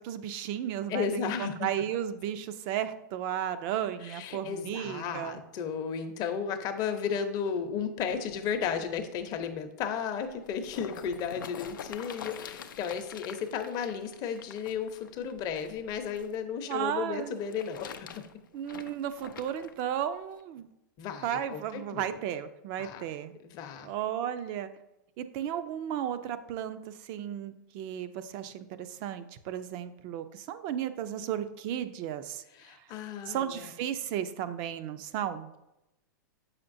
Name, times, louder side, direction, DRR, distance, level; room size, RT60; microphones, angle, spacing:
voice 1, 0.0-5.4 16.7-17.4 18.5-20.7 21.2-23.3 23.8-24.7 25.2-32.8 33.3-35.5, right 10 dB, 45° right, 11 dB, 0.5 m, -34 dB
voice 2, 0.9-1.5 4.0-18.1 21.0-22.0 22.8-23.0 23.4-23.9 32.6-33.7, left 7 dB, 35° left, 7 dB, 0.7 m, -34 dB
sound 1, 10.2-16.3 17.2-19.7 20.4-20.5, left 8 dB, 85° left, 0.5 m, -46 dB
7.0 x 5.7 x 2.6 m, 0.89 s
hypercardioid pair, 125°, 11 cm